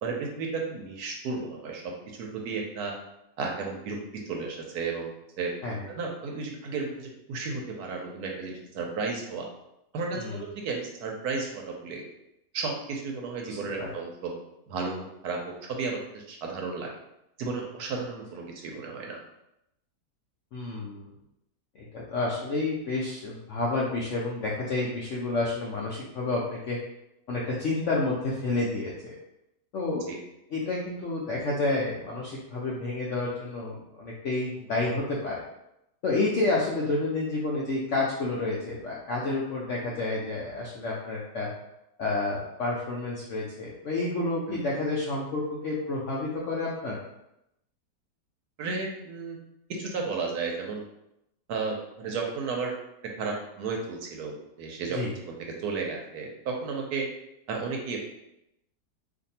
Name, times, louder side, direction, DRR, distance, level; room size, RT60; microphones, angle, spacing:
voice 1, 0.0-1.9 2.2-2.9 3.4-4.0 4.3-5.1 5.4-5.5 6.0-9.5 9.9-12.0 12.5-14.3 14.7-15.4 15.7-16.9 17.4-19.2 30.1-30.2 44.5-44.6 48.6-49.4 49.7-50.8 51.5-52.7 53.2-55.0 55.3-57.1 57.5-58.0, right 4 dB, 70° right, 0 dB, 1.1 m, -33 dB
voice 2, 13.5-13.9 20.5-21.1 21.8-26.8 27.3-29.1 29.7-30.0 30.5-35.4 36.0-41.5 42.0-47.0 54.9-55.1, left 2 dB, 75° left, -4 dB, 0.7 m, -30 dB
2.6 x 2.6 x 4.1 m, 0.85 s
omnidirectional pair, 1.8 m